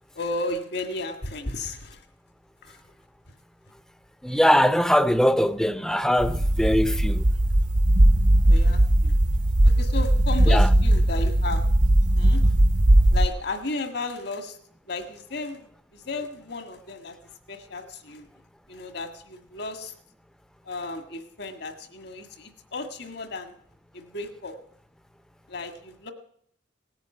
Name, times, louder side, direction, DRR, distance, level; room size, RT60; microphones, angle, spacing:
voice 1, 0.1-2.0 2.6-2.8 8.5-9.1 9.6-11.6 12.1-12.4 13.1-14.6 14.9-17.2 17.5-18.3 18.7-19.9 20.6-23.5 23.9-24.5 25.5-26.1, left 2 dB, 60° left, 1.7 m, -34 dB
voice 2, 4.2-7.2 10.5-10.7, equal, 5° left, 0.6 m, -21 dB
sound 1, 6.2-13.3, right 1 dB, 45° right, 0.7 m, -19 dB
17.5 x 9.6 x 7.7 m
head